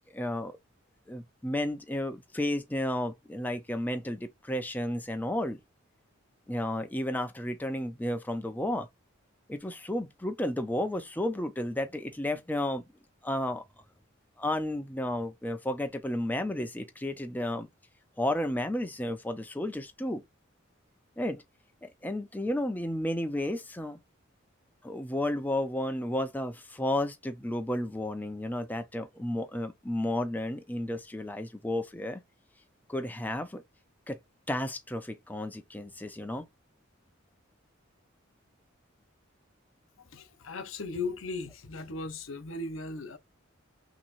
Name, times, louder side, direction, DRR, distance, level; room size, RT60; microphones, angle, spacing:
voice 1, 0.1-0.6 1.1-5.6 6.5-8.9 9.5-12.8 13.2-13.6 14.4-17.7 18.2-20.2 21.2-21.4 21.8-24.0 24.8-32.2 32.9-33.6 34.1-34.2 34.5-36.4, left 1 dB, 10° left, 0.5 m, -32 dB
voice 2, 40.0-43.2, left 3 dB, 70° left, 0.9 m, -37 dB
5.8 x 2.9 x 2.5 m
head